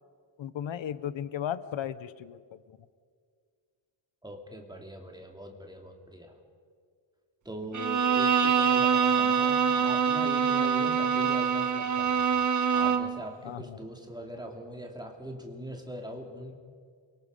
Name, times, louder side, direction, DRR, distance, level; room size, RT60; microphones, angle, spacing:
voice 1, 0.4-2.8 13.4-13.8, left 10 dB, 80° left, 15 dB, 0.8 m, -36 dB
voice 2, 4.2-6.4 7.4-12.3 12.7-16.6, right 1 dB, 10° right, 2 dB, 2.4 m, -42 dB
Bowed string instrument, 7.7-13.2, right 6 dB, 40° right, 1.3 m, -25 dB
27.5 x 24.0 x 5.4 m, 2.1 s
wide cardioid pair, 170°, 45 cm